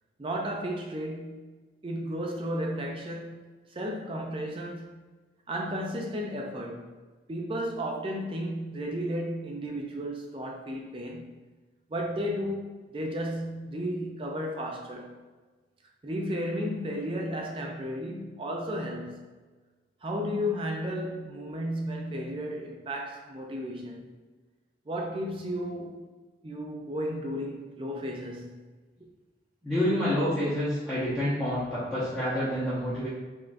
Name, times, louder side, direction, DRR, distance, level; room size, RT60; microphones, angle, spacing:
voice 1, 0.2-1.6 1.8-3.4 3.7-5.0 5.5-7.0 7.3-11.4 11.9-15.2 16.0-19.3 20.0-24.1 24.9-26.0 26.4-28.7, equal, 30° right, 1 dB, 0.4 m, -33 dB
voice 2, 29.6-33.1, equal, ahead, -14 dB, 0.8 m, -28 dB
3.6 x 3.2 x 2.5 m, 1.3 s
head